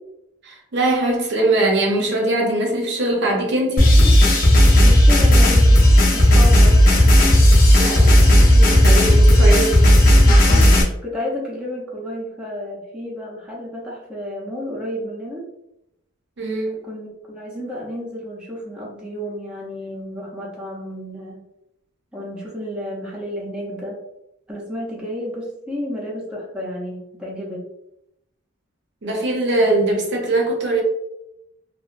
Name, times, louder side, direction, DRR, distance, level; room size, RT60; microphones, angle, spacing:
voice 1, 0.4-4.1 7.8-9.8 16.4-16.8 29.0-30.8, right 2 dB, 60° right, 0 dB, 0.6 m, -21 dB
sound 1, 3.8-10.8, equal, 45° left, 0.6 m, -12 dB
voice 2, 4.8-6.8 10.5-10.8 11.0-15.5 16.9-21.4 22.1-24.0 24.5-27.6, left 1 dB, 5° right, -5 dB, 0.6 m, -31 dB
2.8 x 2.1 x 2.4 m, 0.83 s
head